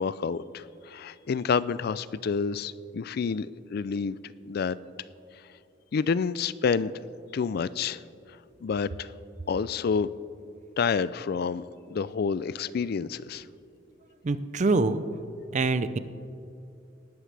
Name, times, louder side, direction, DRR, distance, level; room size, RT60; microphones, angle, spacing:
voice 1, 0.0-4.2 4.5-4.8 5.4-5.5 5.9-6.9 7.3-8.0 8.6-9.1 9.5-10.1 10.8-11.6 11.9-13.5, left 5 dB, 55° left, 17 dB, 0.4 m, -28 dB
voice 2, 14.2-15.0 15.5-16.0, right 3 dB, 40° right, 13 dB, 0.5 m, -25 dB
19.0 x 11.5 x 3.4 m, 2.6 s
head